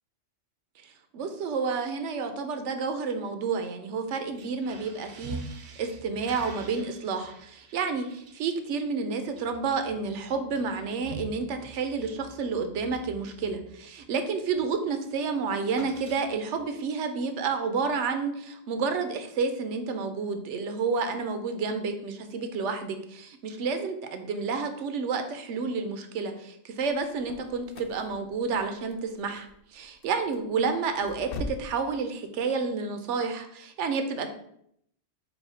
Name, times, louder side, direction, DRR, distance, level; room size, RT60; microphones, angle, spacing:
voice 1, 1.1-5.4 5.8-29.5 29.7-34.3, right 5 dB, 75° right, 7 dB, 0.9 m, -30 dB
sound 1, 4.3-14.2 14.5-14.8 15.1-16.6, right 3 dB, 55° right, 0.6 m, -46 dB
sound 2, 26.8-31.8, left 3 dB, 60° left, 0.6 m, -42 dB
4.8 x 2.3 x 4.9 m, 0.72 s
omnidirectional pair, 1.2 m